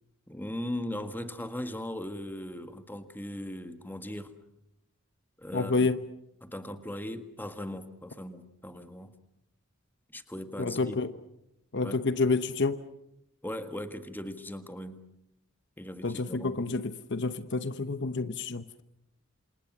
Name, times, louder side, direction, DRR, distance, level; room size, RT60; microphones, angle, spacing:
voice 1, 0.3-4.3 5.4-5.9 6.4-9.1 10.1-11.0 11.8-12.0 13.4-15.1 15.8-16.6, left 1 dB, 10° left, 9 dB, 1.7 m, -38 dB
voice 2, 5.5-6.0 10.6-11.1 11.7-12.8 16.0-18.7, left 3 dB, 55° left, 12 dB, 1.0 m, -29 dB
28.0 x 27.5 x 6.1 m, 0.83 s
head